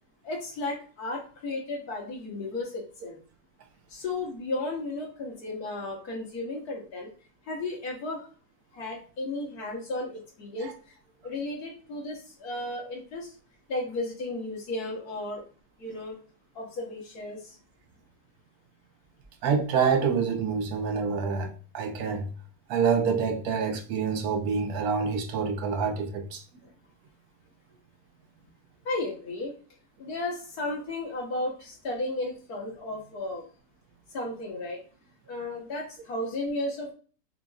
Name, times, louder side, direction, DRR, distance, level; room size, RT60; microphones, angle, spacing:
voice 1, 0.2-3.2 3.9-7.1 7.5-8.3 8.7-10.9 11.2-13.3 13.7-15.4 15.8-16.2 16.6-17.6 28.9-29.5 30.0-33.5 34.1-34.8 35.3-36.9, left 2 dB, 85° left, 1.8 m, -34 dB
voice 2, 19.4-22.3 22.7-26.4, right 6 dB, 80° right, 1.2 m, -27 dB
5.8 x 2.7 x 2.3 m
omnidirectional pair, 1.6 m